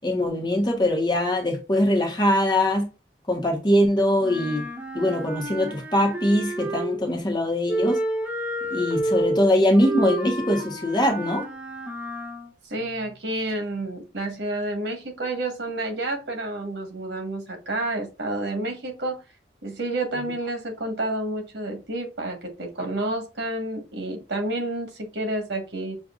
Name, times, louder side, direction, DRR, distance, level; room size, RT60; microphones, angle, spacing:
voice 1, 0.0-2.9 3.3-4.6 4.9-8.0 8.7-11.4, left 1 dB, 25° left, 1.0 m, -22 dB
Wind instrument woodwind instrument, 4.2-7.1 7.7-12.5, right 1 dB, 10° right, 0.8 m, -30 dB
voice 2, 12.6-19.2 19.6-26.0, right 1 dB, 90° right, 1.4 m, -30 dB
6.1 x 2.5 x 2.4 m
head